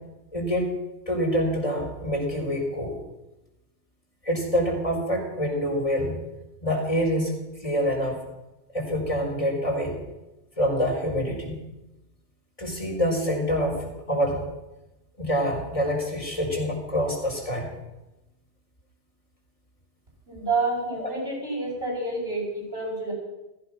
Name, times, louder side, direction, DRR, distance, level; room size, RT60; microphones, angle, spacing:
voice 1, 0.3-0.7 1.1-2.9 4.2-6.2 6.6-8.2 8.7-10.0 10.6-11.6 12.6-14.4 15.2-17.7 21.0-21.1, equal, 30° left, -1 dB, 4.6 m, -26 dB
voice 2, 20.3-23.1, right 3 dB, 65° right, -3 dB, 6.9 m, -28 dB
17.0 x 14.5 x 5.9 m, 1.0 s
omnidirectional pair, 1.1 m